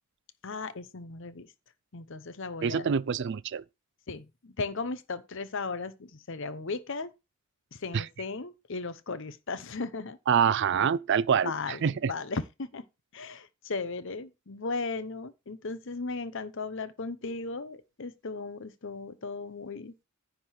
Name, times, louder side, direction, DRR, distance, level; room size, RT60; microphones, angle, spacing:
voice 1, 0.4-1.5 1.9-2.9 4.1-7.1 7.7-10.2 11.4-12.8 13.1-20.0, left 3 dB, 60° left, 0.8 m, -36 dB
voice 2, 2.6-3.6 7.9-8.1 10.3-12.1, right 7 dB, 55° right, 0.4 m, -26 dB
10.0 x 3.8 x 6.4 m
head